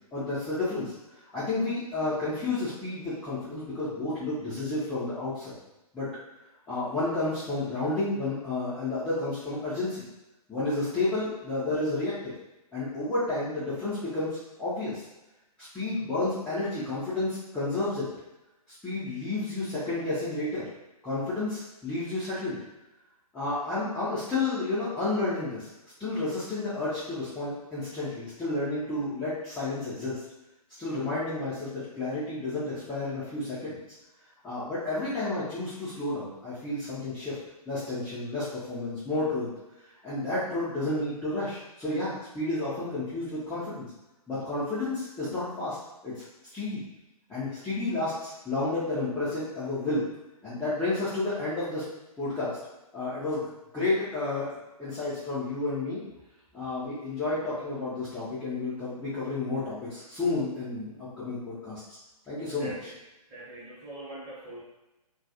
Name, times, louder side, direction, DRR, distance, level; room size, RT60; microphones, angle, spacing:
voice 1, 0.1-0.9 1.3-5.6 5.9-6.1 6.7-10.0 10.5-12.3 12.7-15.0 15.6-18.1 18.8-20.6 21.0-22.6 23.3-25.7 26.0-30.2 30.8-33.8 34.4-37.4 37.7-39.5 40.0-43.9 44.3-45.8 46.0-46.2 46.5-46.8 47.3-50.1 50.4-51.9 52.2-52.6 52.9-53.5 53.7-54.5 54.8-56.0 56.5-61.8 62.3-62.7, left 2 dB, 5° left, -15 dB, 0.5 m, -31 dB
voice 2, 62.6-63.0 63.3-64.6, right 1 dB, 15° right, -8 dB, 0.9 m, -42 dB
2.3 x 2.2 x 2.7 m, 0.98 s
figure-of-eight pair, 130°, 20 cm